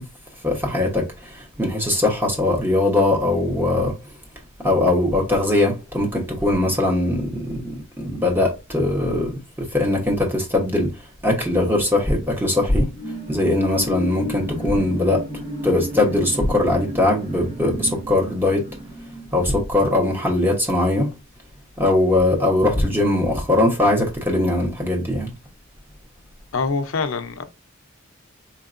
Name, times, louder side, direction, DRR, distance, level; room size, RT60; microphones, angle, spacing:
voice 1, 0.4-3.9 4.6-10.9 11.2-12.9 13.3-18.6 19.3-21.1 21.8-25.3, left 2 dB, 10° right, 1.0 m, -21 dB
sound 1, 12.8-20.6 21.0-21.1, equal, 35° right, 1.1 m, -33 dB
voice 2, 26.5-27.4, left 4 dB, 75° left, 0.6 m, -24 dB
4.5 x 2.8 x 2.5 m
head